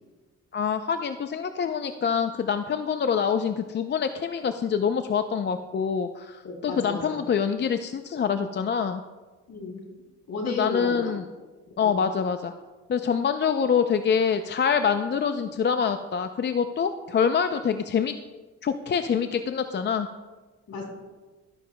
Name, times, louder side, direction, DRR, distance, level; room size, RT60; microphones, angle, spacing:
voice 1, 0.5-9.0 10.4-11.2 11.8-12.5 12.9-18.1 18.6-20.1, left 6 dB, 35° left, 8 dB, 0.5 m, -25 dB
voice 2, 6.4-7.2 9.5-9.8 10.3-11.1 11.8-12.0 20.7-20.8, left 3 dB, 60° left, 0 dB, 3.1 m, -33 dB
13.0 x 10.5 x 2.2 m, 1.3 s
cardioid pair, 90°, 30 cm